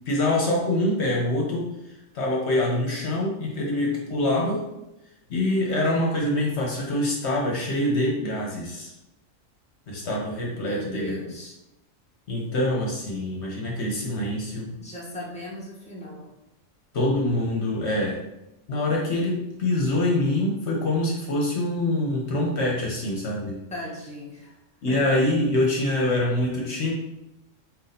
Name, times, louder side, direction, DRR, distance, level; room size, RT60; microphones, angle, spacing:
voice 1, 0.1-1.7 2.1-4.6 5.3-8.9 9.9-11.3 12.3-14.7 16.9-18.2 18.7-23.6 24.8-26.9, left 1 dB, 60° left, -2 dB, 1.1 m, -25 dB
voice 2, 10.5-11.5 14.8-16.3 23.7-24.6 24.9-25.0, equal, 5° left, -5 dB, 1.0 m, -38 dB
4.2 x 2.7 x 4.0 m, 0.92 s
omnidirectional pair, 1.3 m